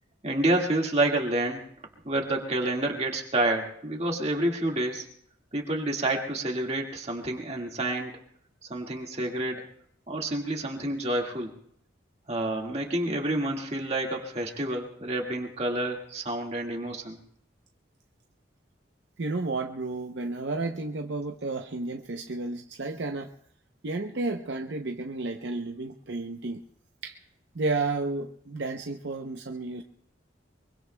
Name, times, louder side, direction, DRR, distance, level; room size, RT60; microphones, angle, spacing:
voice 1, 0.2-1.6 2.0-5.1 5.5-8.1 8.7-9.7 10.1-11.5 12.3-17.2, right 1 dB, 35° right, 1 dB, 1.8 m, -28 dB
voice 2, 19.2-23.3 23.8-26.6 27.0-27.2 27.5-29.8, right 3 dB, 65° right, 3 dB, 0.7 m, -32 dB
24.0 x 23.0 x 2.2 m, 0.66 s
head